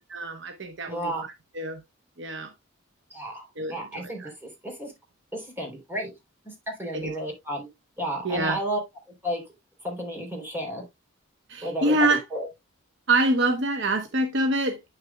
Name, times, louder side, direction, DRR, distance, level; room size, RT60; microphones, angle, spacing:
voice 1, 0.1-1.1 1.6-1.8 2.2-2.5 3.6-4.3 6.9-7.1 8.2-8.6 11.5-12.2 13.1-14.8, right 2 dB, 55° right, 1.0 m, -25 dB
voice 2, 0.9-1.2 3.1-4.9 5.3-6.1 6.4-7.7 8.0-8.8 9.2-9.4 9.8-10.8 11.6-12.5, right 1 dB, 10° right, 3.4 m, -32 dB
9.8 x 6.6 x 2.3 m
head